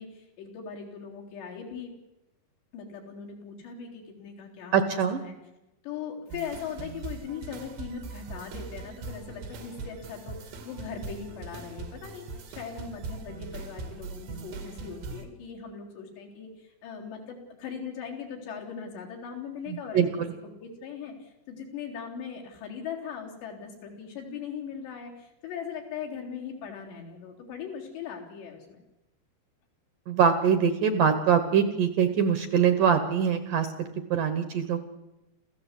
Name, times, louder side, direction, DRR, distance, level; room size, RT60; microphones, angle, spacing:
voice 1, 0.0-1.9 2.7-5.3 5.8-20.1 20.6-28.8, left 7 dB, 75° left, 0 dB, 5.8 m, -40 dB
voice 2, 4.7-5.2 19.7-20.3 30.1-34.8, right 7 dB, 65° right, 10 dB, 2.3 m, -24 dB
sound 1, 6.3-15.3, right 4 dB, 90° right, 4.7 m, -41 dB
28.0 x 15.0 x 8.3 m, 0.96 s
omnidirectional pair, 5.0 m